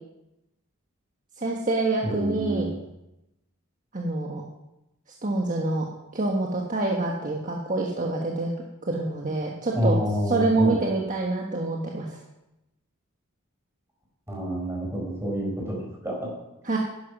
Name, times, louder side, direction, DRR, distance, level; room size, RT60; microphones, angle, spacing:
voice 1, 1.4-2.7 3.9-4.4 5.2-5.9 6.1-8.5 8.9-10.0 10.3-12.2 16.6-16.8, right 2 dB, 40° right, -1 dB, 1.4 m, -26 dB
voice 2, 2.0-2.7 9.7-10.8 14.3-16.3, equal, 10° right, -2 dB, 4.6 m, -28 dB
11.0 x 10.5 x 6.1 m, 0.92 s
head